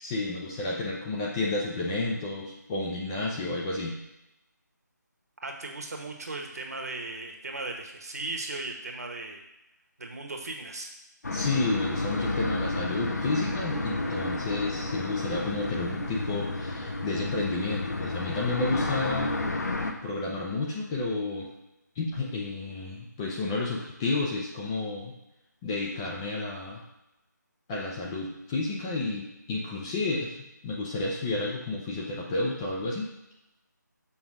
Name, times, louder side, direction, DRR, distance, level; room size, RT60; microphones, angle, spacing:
voice 1, 0.0-4.0 11.3-19.3 20.0-21.5 22.0-25.1 25.6-26.8 27.7-30.4 30.6-33.1, left 2 dB, 10° left, -3 dB, 0.6 m, -31 dB
voice 2, 5.4-9.4 10.0-10.9, right 2 dB, 55° right, 2 dB, 1.3 m, -37 dB
sound 1, 11.2-19.9, left 2 dB, 60° left, 1.0 m, -31 dB
6.1 x 3.7 x 6.1 m, 0.91 s
figure-of-eight pair, 160°, 10 cm